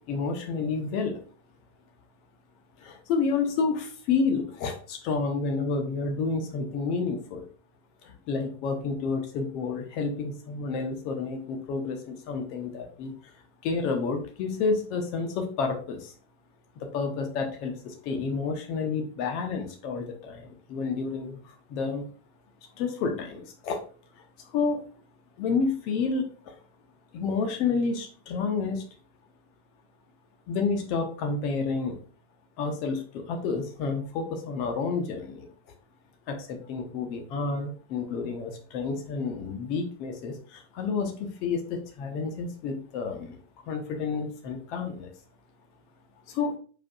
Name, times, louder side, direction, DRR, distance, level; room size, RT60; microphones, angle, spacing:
voice 1, 0.1-1.2 2.8-7.4 8.0-13.3 13.6-16.1 16.8-22.0 22.8-23.8 24.4-24.9 25.4-26.5 27.1-28.9 30.5-32.0 32.6-35.5 36.3-43.4 43.7-45.1 46.3-46.6, left 4 dB, 45° left, 5 dB, 1.0 m, -30 dB
4.8 x 4.5 x 2.4 m, 0.41 s
figure-of-eight pair, 90°, 0 cm